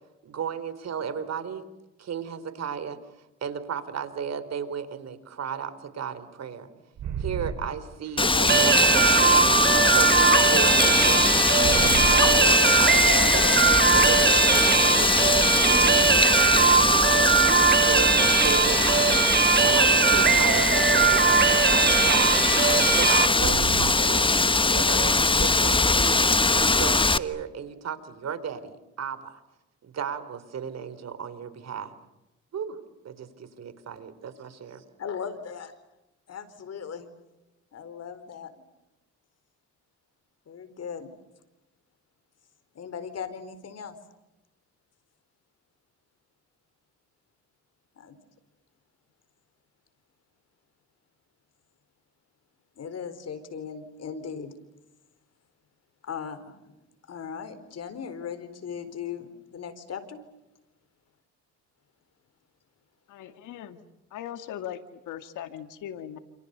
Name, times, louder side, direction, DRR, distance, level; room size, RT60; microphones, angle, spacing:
voice 1, 0.2-1.6 2.0-3.0 3.4-6.7 7.2-9.4 9.7-13.5 13.9-16.9 17.4-19.3 19.6-24.3 24.7-26.2 26.5-29.4 29.8-31.9 32.5-32.8 33.0-34.8, right 7 dB, 60° right, 13 dB, 4.0 m, -34 dB
sound 1, 7.0-7.6 8.1-8.2 10.6-10.7 11.6-12.2 13.7-13.8 14.2-14.3 14.8-14.9 16.2-16.8 17.2-17.8 18.3-19.3 19.8-24.0, right 8 dB, 75° right, 4.9 m, -36 dB
Wind, 8.2-27.2, left 3 dB, 15° left, 1.2 m, -22 dB
sound 2, 8.5-23.3, right 6 dB, 35° right, 1.2 m, -21 dB
voice 2, 35.0-35.7 36.3-37.1 37.7-38.6 40.5-41.1 42.7-43.9 48.0-48.2 52.8-54.5 56.0-56.7 57.1-60.2, left 7 dB, 55° left, 11 dB, 4.5 m, -38 dB
voice 3, 63.1-63.8 64.1-66.2, left 10 dB, 85° left, 9 dB, 2.3 m, -39 dB
29.0 x 28.0 x 6.9 m, 0.94 s
cardioid pair, 90°, 30 cm